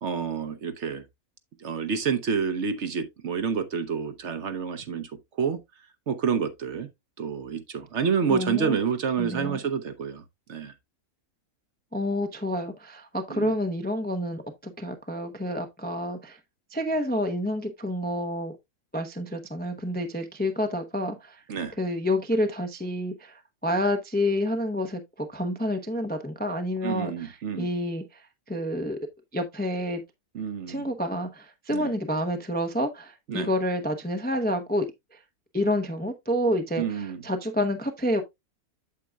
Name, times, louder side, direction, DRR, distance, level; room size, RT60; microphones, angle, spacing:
voice 1, 0.0-1.0 1.6-5.6 6.1-6.9 7.2-10.2 10.5-10.7 13.3-13.5 21.5-21.7 26.8-27.7 30.3-30.8 31.7-31.9 33.3-33.5 36.8-37.2, right 6 dB, 60° right, 1.0 m, -28 dB
voice 2, 8.3-8.7 9.2-9.6 11.9-16.4 16.7-18.5 18.9-21.4 21.8-29.0 29.3-30.0 30.7-34.9 35.1-35.2 35.5-38.2, left 1 dB, 10° left, 0.4 m, -29 dB
8.3 x 7.4 x 2.3 m
omnidirectional pair, 1.5 m